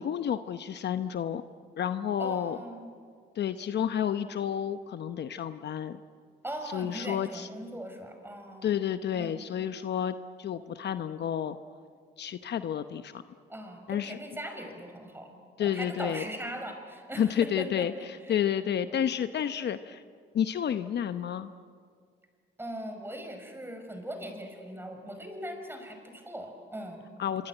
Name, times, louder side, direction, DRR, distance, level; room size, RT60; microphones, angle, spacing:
voice 1, 0.0-1.4 1.8-2.6 3.3-6.0 6.7-7.5 8.6-11.6 12.2-13.2 13.9-14.2 15.6-16.2 17.2-17.9 18.3-20.0 20.3-21.5 27.2-27.5, left 9 dB, 60° left, 10 dB, 0.9 m, -30 dB
voice 2, 2.2-2.9 6.4-8.8 9.1-9.4 13.5-17.9 18.2-18.4 22.6-27.1, right 1 dB, 10° right, 4 dB, 6.1 m, -40 dB
25.0 x 25.0 x 9.1 m, 2.1 s
cardioid pair, 90°, 20 cm